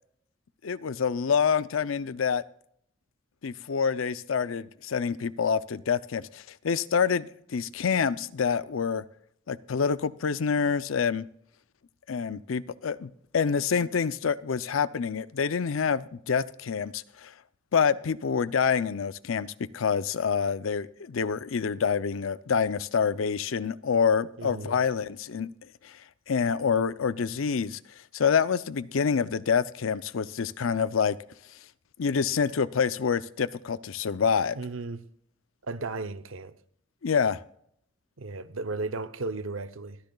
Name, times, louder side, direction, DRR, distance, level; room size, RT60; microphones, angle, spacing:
voice 1, 0.6-2.4 3.4-9.0 9.5-11.3 12.1-17.3 17.7-25.5 25.8-26.0 26.3-27.8 28.1-31.2 32.0-34.6 37.0-37.4, left 6 dB, 85° left, 0.5 m, -27 dB
voice 2, 24.4-24.8 34.5-35.0 35.7-36.5 38.2-40.0, right 3 dB, 80° right, 0.8 m, -35 dB
22.0 x 10.5 x 2.3 m
head